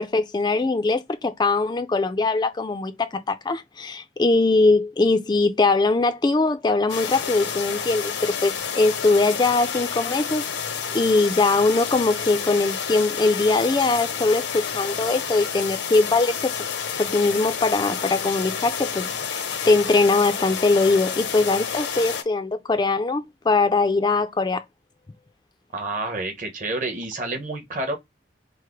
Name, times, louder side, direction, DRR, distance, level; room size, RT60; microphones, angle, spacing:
voice 1, 0.0-10.5 10.9-16.5 17.0-24.6, left 3 dB, 25° left, 0.3 m, -21 dB
sound 1, 6.9-22.2, left 7 dB, 90° left, 0.8 m, -30 dB
voice 2, 25.7-27.9, right 2 dB, 45° right, 1.1 m, -29 dB
4.7 x 2.0 x 4.5 m
head